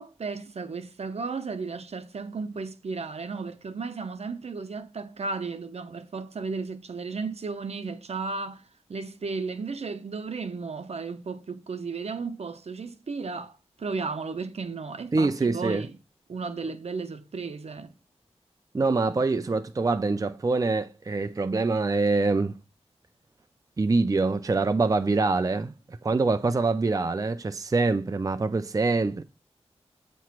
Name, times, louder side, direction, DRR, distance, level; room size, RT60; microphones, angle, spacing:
voice 1, 0.0-8.6 8.9-16.0 16.3-17.9, right 4 dB, 70° right, 0.8 m, -34 dB
voice 2, 15.1-15.9 18.7-22.5 23.8-25.7 26.0-29.2, right 3 dB, 30° right, 0.5 m, -25 dB
8.4 x 3.1 x 5.8 m
wide cardioid pair, 75°, 11 cm